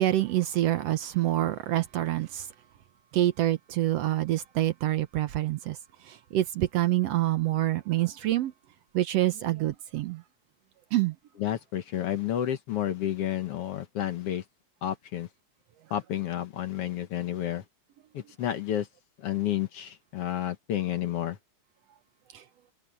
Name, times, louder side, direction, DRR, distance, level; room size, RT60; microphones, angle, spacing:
voice 1, 0.0-2.5 3.1-5.8 6.0-8.5 8.9-10.2 10.9-11.2 22.3-22.4, right 14 dB, 70° right, 1.8 m, -26 dB
voice 2, 11.4-14.4 14.8-15.3 15.9-17.6 18.1-18.9 19.2-21.4, left 11 dB, 60° left, 1.8 m, -30 dB
omnidirectional pair, 3.3 m